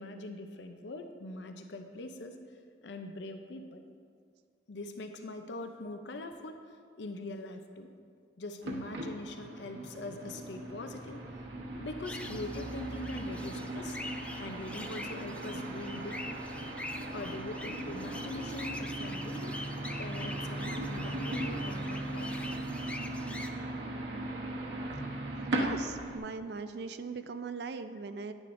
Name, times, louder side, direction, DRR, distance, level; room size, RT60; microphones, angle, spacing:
voice 1, 0.0-2.4 2.8-3.8 4.7-7.9 8.4-11.3 11.8-14.0 14.4-16.4 17.1-19.6 20.0-22.4, left 2 dB, 80° left, 6 dB, 0.6 m, -42 dB
sound 1, 8.6-26.2, right 1 dB, 85° right, 1.1 m, -38 dB
sound 2, 12.0-23.5, left 1 dB, 5° left, 0.3 m, -45 dB
voice 2, 25.4-28.3, right 4 dB, 65° right, 10 dB, 0.4 m, -40 dB
10.5 x 9.7 x 2.6 m, 2.1 s
head